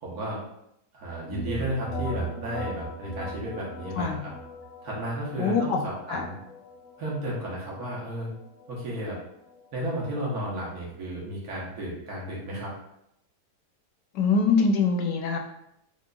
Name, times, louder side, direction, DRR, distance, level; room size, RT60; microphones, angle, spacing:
voice 1, 0.0-0.4 0.9-4.3 4.8-6.3 7.0-8.3 8.7-9.2 9.7-12.7, right 1 dB, 65° right, -5 dB, 1.5 m, -33 dB
sound 1, 1.3-10.9, equal, 65° left, 0.9 m, -39 dB
voice 2, 5.4-5.8 6.1-6.3 14.1-15.4, left 4 dB, 85° left, 3 dB, 1.2 m, -23 dB
3.9 x 2.9 x 2.2 m, 0.79 s
omnidirectional pair, 1.8 m